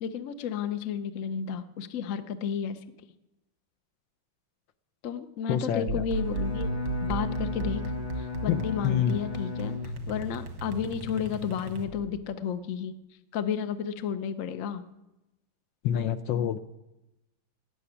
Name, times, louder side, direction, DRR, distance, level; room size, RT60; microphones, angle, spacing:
voice 1, 0.0-2.8 5.0-7.8 8.2-9.8 10.1-12.9 13.3-14.9, left 7 dB, 55° left, 10 dB, 0.9 m, -32 dB
voice 2, 5.5-6.0 8.5-9.2 15.8-16.6, left 9 dB, 70° left, 11 dB, 1.3 m, -27 dB
sound 1, 5.9-12.2, right 3 dB, 80° right, 2.3 m, -35 dB
Bowed string instrument, 6.1-10.4, left 7 dB, 35° left, 0.5 m, -36 dB
17.0 x 6.9 x 9.9 m, 0.98 s
omnidirectional pair, 2.2 m